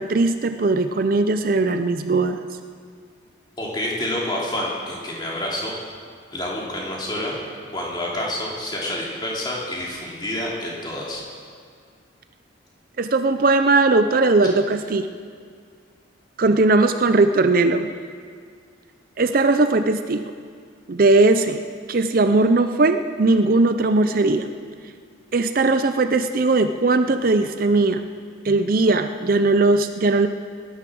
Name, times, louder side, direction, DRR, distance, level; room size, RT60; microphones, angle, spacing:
voice 1, 0.0-2.4 13.0-15.1 16.4-17.9 19.2-20.2 20.9-21.6 21.9-24.5 25.3-28.0 28.4-30.3, right 3 dB, 45° right, 9 dB, 0.5 m, -19 dB
voice 2, 3.6-5.7 6.3-7.4 7.7-11.2, left 1 dB, 20° left, -4 dB, 3.0 m, -28 dB
19.0 x 11.5 x 6.2 m, 2.1 s
head